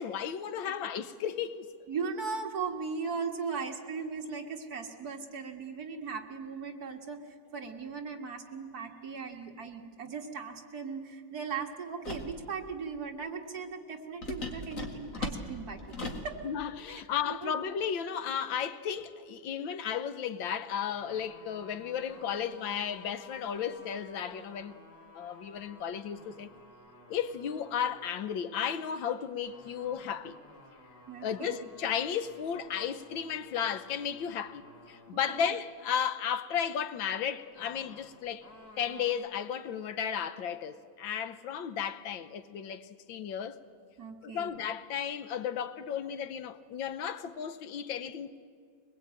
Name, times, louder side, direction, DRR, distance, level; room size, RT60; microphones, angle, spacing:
voice 1, 0.0-1.7 16.4-24.8 25.1-26.5 27.1-30.4 31.2-38.5 38.8-43.6 44.2-48.4, left 8 dB, 90° left, 1.7 m, -34 dB
voice 2, 1.9-7.2 7.5-16.4 17.2-17.5 31.1-31.6 35.3-35.4 44.0-44.6, right 5 dB, 55° right, 2.1 m, -38 dB
sound 1, 12.0-12.4 14.2-16.3, left 2 dB, 45° left, 2.4 m, -38 dB
sound 2, 20.9-28.3 29.4-35.1 37.5-39.1, left 2 dB, 70° left, 4.7 m, -54 dB
22.5 x 21.0 x 8.9 m
omnidirectional pair, 2.1 m